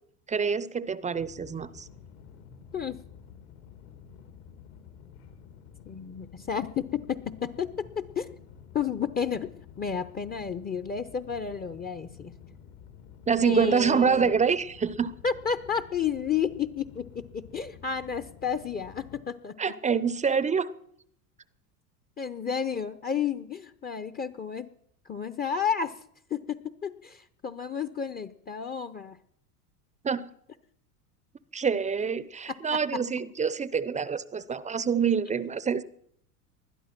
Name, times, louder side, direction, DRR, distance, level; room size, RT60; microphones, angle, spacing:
voice 1, 0.3-1.9 13.3-15.1 19.6-20.7 30.0-30.3 31.5-35.8, right 6 dB, 15° right, 18 dB, 0.6 m, -26 dB
sound 1, 1.1-19.2, left 7 dB, 75° left, 3.0 m, -50 dB
voice 2, 5.9-8.3 8.7-12.3 13.4-14.3 15.2-19.8 22.2-24.7 25.1-26.0 26.3-29.2 32.5-33.0, left 7 dB, 20° left, 12 dB, 0.7 m, -32 dB
20.5 x 12.0 x 6.0 m, 0.69 s
hypercardioid pair, 90°, 45 cm